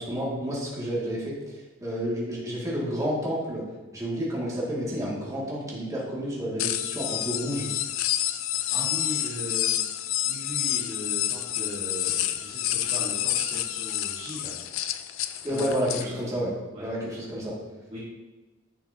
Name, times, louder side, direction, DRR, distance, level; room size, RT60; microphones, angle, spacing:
voice 1, 0.0-1.5 1.8-3.6 3.9-7.7 15.4-17.5, equal, 15° right, -6 dB, 2.3 m, -30 dB
sound 1, 6.6-16.0, left 13 dB, 85° left, 0.4 m, -29 dB
voice 2, 8.7-9.9 10.2-14.5 15.5-15.7 16.0-16.3 16.7-16.9 17.9-18.0, equal, 35° right, -8 dB, 1.7 m, -38 dB
10.5 x 6.2 x 2.9 m, 1.2 s
head